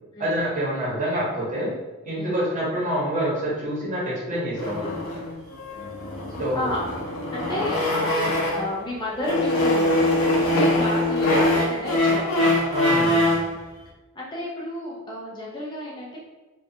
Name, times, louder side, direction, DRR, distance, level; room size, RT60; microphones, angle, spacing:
voice 1, 0.2-1.8 2.0-5.0 6.4-6.6 12.7-13.5, equal, 35° right, -6 dB, 0.9 m, -27 dB
sound 1, 4.6-8.8 9.2-13.5, left 1 dB, 75° left, 0.6 m, -23 dB
voice 2, 6.5-12.5 14.1-16.2, left 1 dB, 20° left, -5 dB, 0.4 m, -32 dB
2.5 x 2.3 x 2.7 m, 1.1 s
head